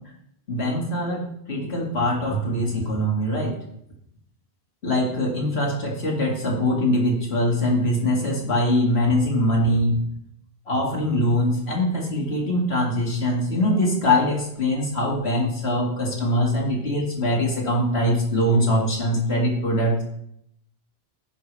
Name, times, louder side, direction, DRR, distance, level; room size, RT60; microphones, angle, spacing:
voice 1, 0.5-1.2 1.5-3.5 4.8-10.0 10.7-20.0, left 1 dB, 70° left, -2 dB, 2.5 m, -22 dB
16.5 x 5.9 x 3.4 m, 0.74 s
omnidirectional pair, 1.1 m